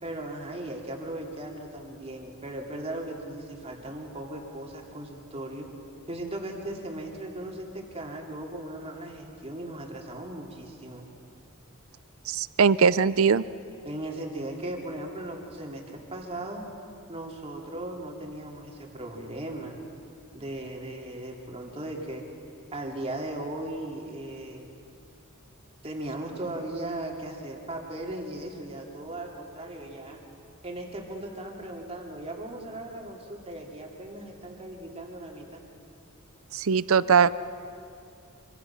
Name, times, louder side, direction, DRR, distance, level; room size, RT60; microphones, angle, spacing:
voice 1, 0.0-5.7 6.1-11.0 13.8-16.6 17.1-19.8 20.3-22.2 22.7-24.7 25.8-30.2 30.6-35.6, right 1 dB, 25° right, 1 dB, 2.7 m, -37 dB
voice 2, 12.3-13.4 36.5-37.3, right 6 dB, 65° right, 17 dB, 0.6 m, -21 dB
25.5 x 25.0 x 5.9 m, 2.6 s
head